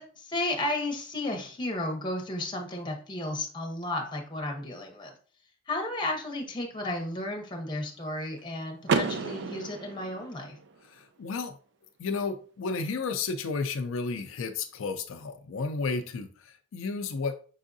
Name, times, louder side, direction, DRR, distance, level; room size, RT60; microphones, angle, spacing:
voice 1, 0.0-5.1 5.7-10.6, left 2 dB, 25° left, 2 dB, 0.9 m, -33 dB
Car / Door, 8.8-10.8, right 5 dB, 60° right, 0.4 m, -31 dB
voice 2, 10.9-11.6 12.0-17.4, left 4 dB, 80° left, 6 dB, 0.4 m, -32 dB
5.5 x 3.5 x 2.6 m, 0.42 s
head